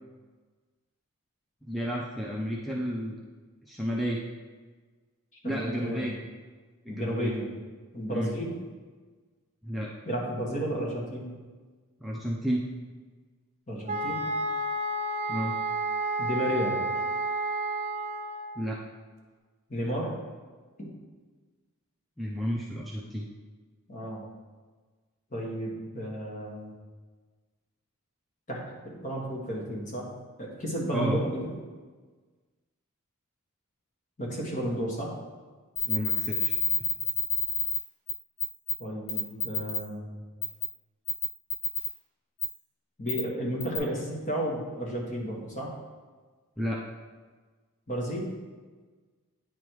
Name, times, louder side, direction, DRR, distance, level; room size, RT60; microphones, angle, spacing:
voice 1, 1.7-3.1 3.7-4.2 5.4-6.2 6.9-7.3 8.1-8.3 9.6-9.9 12.0-12.6 15.3-15.5 18.6-18.8 22.2-23.3 30.9-31.2 35.8-36.5 46.6-46.8, equal, ahead, -3 dB, 0.5 m, -31 dB
voice 2, 5.4-6.1 6.9-7.5 7.9-8.5 10.0-11.3 13.7-14.2 16.2-16.8 19.7-20.2 20.8-20.9 23.9-24.3 25.3-26.7 28.5-30.1 30.4-31.5 34.2-35.1 38.8-40.2 43.0-45.7 47.9-48.3, equal, 35° left, -3 dB, 1.5 m, -32 dB
sound 1, 13.9-18.6, right 2 dB, 35° right, 0.9 m, -30 dB
sound 2, 35.8-37.8 38.1-38.2 38.4-38.7 39.1-39.8 40.4-40.6 41.1-41.9 42.4-42.5 43.1-43.2 43.6-43.8, left 4 dB, 70° left, 1.9 m, -27 dB
9.4 x 3.4 x 4.6 m, 1.4 s
head